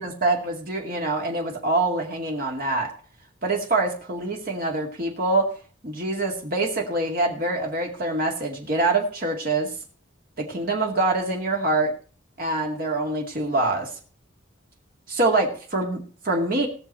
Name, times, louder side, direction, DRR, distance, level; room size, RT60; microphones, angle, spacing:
voice 1, 0.0-2.9 3.4-5.5 5.8-9.7 10.4-11.9 12.4-13.9 15.1-16.7, right 2 dB, 45° right, 0 dB, 2.3 m, -25 dB
19.0 x 6.7 x 4.3 m, 0.41 s
head